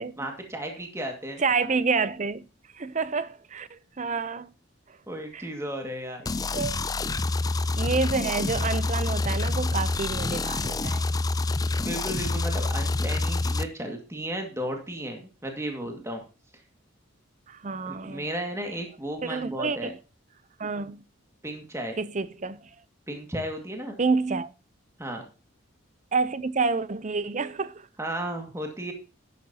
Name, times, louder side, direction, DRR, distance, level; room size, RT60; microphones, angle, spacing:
voice 1, 0.2-1.4 4.1-4.2 5.1-6.3 11.8-16.2 17.9-19.9 21.4-22.0 23.1-24.0 25.0-25.2 28.0-28.9, right 1 dB, 15° right, 2.0 m, -34 dB
voice 2, 1.4-2.4 2.7-4.5 5.3-5.5 6.5-6.8 7.8-11.1 17.5-18.2 19.2-20.0 20.6-21.0 22.0-22.7 24.0-24.5 26.1-27.9, right 4 dB, 35° right, 0.6 m, -28 dB
sound 1, 6.3-13.6, left 2 dB, 20° left, 0.4 m, -27 dB
12.5 x 10.5 x 2.9 m
head